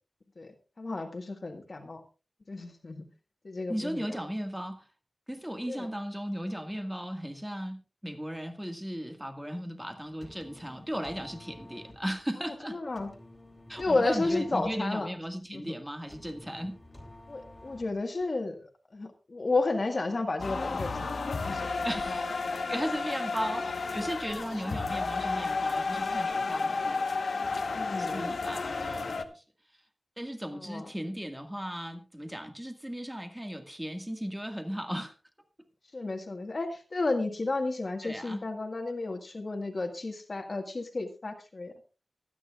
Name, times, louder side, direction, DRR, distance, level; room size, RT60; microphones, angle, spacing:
voice 1, 0.8-2.0 2.5-3.1 3.4-4.0 5.7-5.9 12.7-13.1 13.8-15.1 15.5-15.8 17.3-18.6 18.9-21.1 21.4-21.9 27.7-28.4 30.5-30.9 35.9-41.7, left 3 dB, 50° left, 4 dB, 1.7 m, -32 dB
voice 2, 3.7-4.9 5.3-12.8 13.7-16.8 21.8-27.0 28.0-29.4 30.2-35.1 38.0-38.5, equal, 10° right, 6 dB, 1.8 m, -36 dB
sound 1, 10.0-18.2, left 1 dB, 15° left, 2.7 m, -51 dB
sound 2, 20.4-29.2, left 4 dB, 80° left, 1.2 m, -32 dB
25.0 x 9.3 x 2.4 m, 0.33 s
wide cardioid pair, 90°, 0 cm